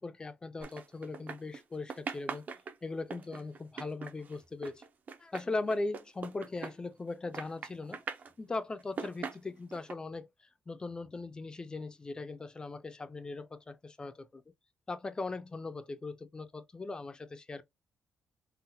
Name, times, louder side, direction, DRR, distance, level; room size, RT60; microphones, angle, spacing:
voice 1, 0.0-2.5 2.8-4.8 5.2-8.0 8.4-10.3 10.7-14.4 14.9-17.6, left 3 dB, 15° left, 0.4 m, -39 dB
sound 1, 0.6-1.6 1.9-7.1 7.3-8.3 8.8-9.9, right 5 dB, 35° right, 0.5 m, -41 dB
3.8 x 2.1 x 2.6 m
cardioid pair, 155°, 5 cm